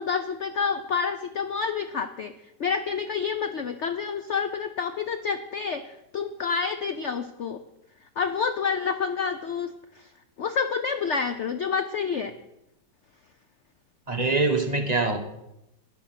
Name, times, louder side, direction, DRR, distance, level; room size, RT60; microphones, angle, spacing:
voice 1, 0.0-2.3 2.6-7.6 8.2-10.1 10.4-12.3, left 6 dB, 60° left, 9 dB, 0.8 m, -28 dB
voice 2, 14.1-15.2, right 3 dB, 25° right, 4 dB, 1.3 m, -24 dB
12.5 x 10.5 x 5.9 m, 0.86 s
omnidirectional pair, 1.9 m